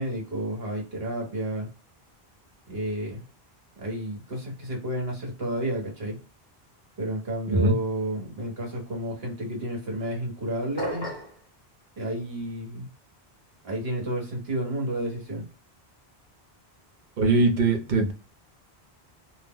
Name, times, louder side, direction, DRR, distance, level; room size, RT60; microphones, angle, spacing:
voice 1, 0.0-1.7 2.7-3.2 3.8-6.2 7.0-11.1 12.0-12.9 13.6-15.4, right 1 dB, 70° right, 1.3 m, -31 dB
sound 1, 10.8-11.4, left 1 dB, 25° left, 0.9 m, -33 dB
voice 2, 17.2-18.1, right 3 dB, 55° right, 0.7 m, -21 dB
2.6 x 2.1 x 3.5 m
omnidirectional pair, 1.1 m